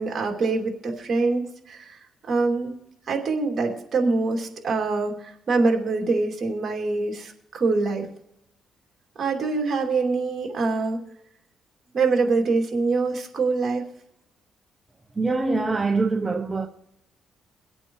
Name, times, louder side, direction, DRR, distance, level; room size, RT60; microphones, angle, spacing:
voice 1, 0.0-2.0 2.3-2.8 3.1-8.1 9.2-11.0 11.9-13.8, right 3 dB, 45° right, 2.7 m, -24 dB
voice 2, 15.2-16.7, right 3 dB, 20° right, 0.9 m, -24 dB
24.0 x 8.5 x 3.2 m
cardioid pair, 90°, 0 cm